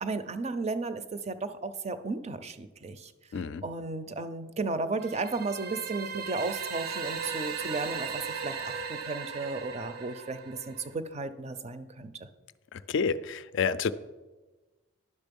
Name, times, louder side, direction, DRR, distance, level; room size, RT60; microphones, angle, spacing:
voice 1, 0.0-3.1 3.6-12.3, right 3 dB, 30° right, 11 dB, 0.5 m, -34 dB
voice 2, 3.3-3.6 12.7-13.9, left 5 dB, 55° left, 13 dB, 0.3 m, -29 dB
sound 1, 5.0-10.9, right 5 dB, 80° right, 0.9 m, -37 dB
11.0 x 6.3 x 5.3 m, 1.2 s
head